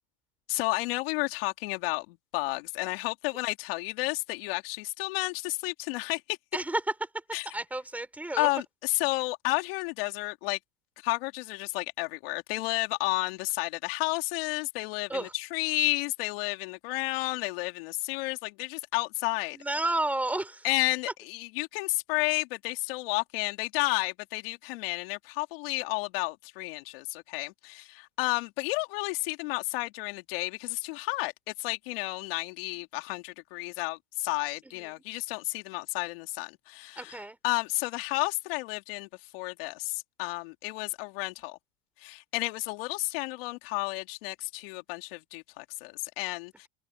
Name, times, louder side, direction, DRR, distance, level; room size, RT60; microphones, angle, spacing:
voice 1, 0.5-6.4 7.3-7.5 8.4-10.6 11.0-19.6 20.6-31.3 31.6-39.1 39.3-41.6 42.0-46.7, left 24 dB, 55° left, 3.0 m, -32 dB
voice 2, 6.5-6.9 7.5-8.5 15.1-15.3 19.5-20.7 34.7-34.9 37.0-37.4, right 1 dB, 5° right, 5.6 m, -31 dB
supercardioid pair, 155°, 34 cm